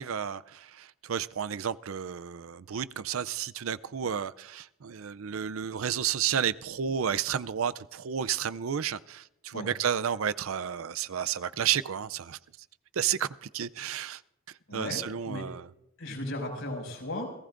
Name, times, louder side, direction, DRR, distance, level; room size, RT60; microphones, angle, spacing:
voice 1, 0.0-12.4 12.9-14.2 14.7-15.7, right 8 dB, 75° right, 0.5 m, -31 dB
voice 2, 14.7-15.4 16.0-17.3, left 1 dB, 75° left, 6.3 m, -36 dB
29.0 x 18.0 x 2.6 m
head